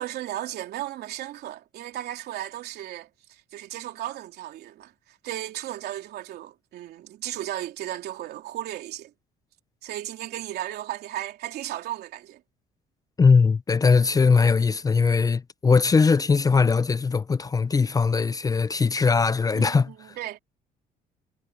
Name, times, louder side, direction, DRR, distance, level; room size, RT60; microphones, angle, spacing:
voice 1, 0.0-3.1 3.5-9.1 9.8-12.4 19.5-20.4, right 13 dB, 70° right, 3.2 m, -35 dB
voice 2, 13.2-19.9, left 5 dB, 20° left, 0.5 m, -20 dB
cardioid pair, 110°, 17 cm